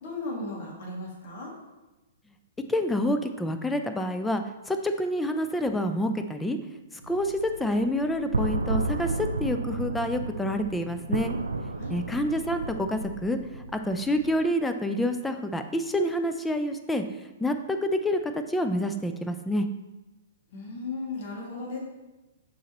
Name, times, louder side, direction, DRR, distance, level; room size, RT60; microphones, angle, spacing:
voice 1, 0.0-1.5 11.8-12.0 20.5-21.8, left 3 dB, 45° left, -3 dB, 2.1 m, -36 dB
voice 2, 2.7-6.6 7.1-11.3 11.9-19.7, left 1 dB, 5° left, 7 dB, 0.5 m, -28 dB
sound 1, 7.0-14.4, right 2 dB, 80° right, 0.5 m, -33 dB
6.3 x 5.4 x 3.0 m, 1.1 s
figure-of-eight pair, 115°, 0 cm